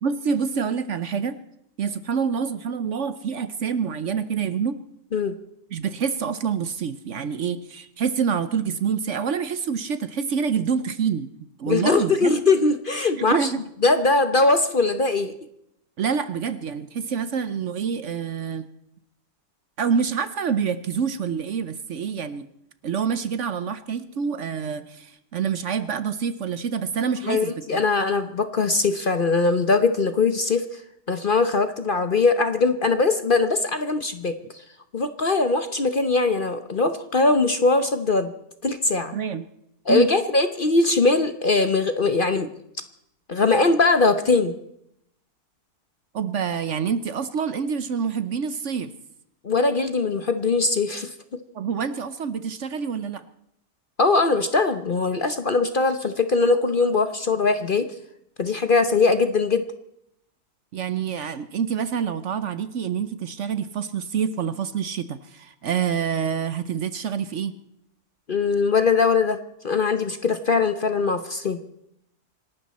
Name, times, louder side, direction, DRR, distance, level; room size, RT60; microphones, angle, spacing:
voice 1, 0.0-1.4 1.8-4.8 5.7-12.3 13.3-13.6 16.0-18.7 19.8-22.5 22.8-27.9 39.1-39.4 39.9-40.1 46.1-48.9 51.5-53.2 60.7-67.5, right 6 dB, 60° right, 13 dB, 1.0 m, -27 dB
voice 2, 11.7-15.3 27.2-30.8 31.1-34.3 34.9-38.3 38.6-39.1 39.9-42.5 43.3-44.5 49.4-51.1 54.0-57.9 58.4-59.6 68.3-69.4 69.6-71.6, left 3 dB, 40° left, 10 dB, 0.9 m, -21 dB
26.5 x 12.0 x 4.2 m, 0.76 s
omnidirectional pair, 1.6 m